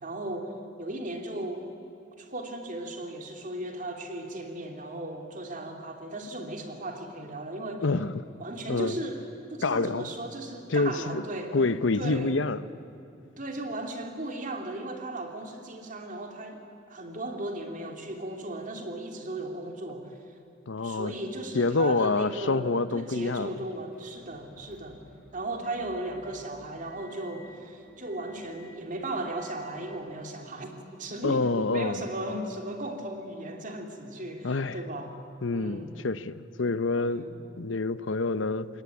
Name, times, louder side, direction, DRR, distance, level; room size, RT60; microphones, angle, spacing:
voice 1, 0.0-1.7 2.2-7.9 8.4-9.2 9.5-11.6 12.0-12.4 13.4-20.3 20.8-25.0 25.3-35.1 35.5-35.9 37.1-37.4, right 1 dB, 45° right, 3.0 m, -36 dB
voice 2, 7.8-8.2 8.7-8.9 9.6-10.1 10.7-11.2 11.5-12.6 20.7-21.1 21.5-23.5 31.2-32.0 34.4-34.8 35.4-37.3 37.6-38.7, left 3 dB, 85° left, 0.8 m, -27 dB
Motor vehicle (road) / Engine, 23.9-30.0, left 2 dB, 5° right, 7.4 m, -55 dB
26.5 x 21.5 x 9.5 m
head